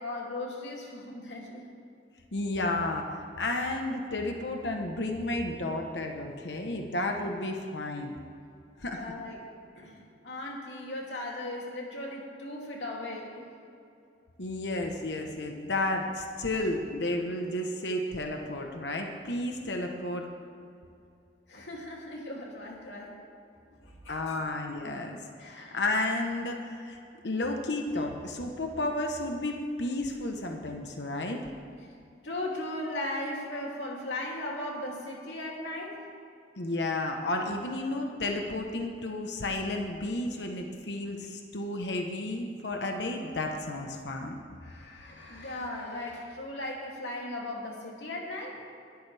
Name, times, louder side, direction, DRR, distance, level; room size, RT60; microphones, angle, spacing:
voice 1, 0.0-1.7 8.9-9.4 9.7-13.4 21.5-23.1 23.7-24.4 25.4-25.8 32.2-36.0 44.6-48.6, left 1 dB, 85° left, -2 dB, 2.9 m, -37 dB
voice 2, 2.3-3.1 3.4-8.1 8.8-9.1 14.4-20.3 24.1-27.0 27.2-31.5 36.6-44.4 45.2-45.5, left 2 dB, 70° left, 3 dB, 1.1 m, -32 dB
22.0 x 13.0 x 3.5 m, 2.6 s
head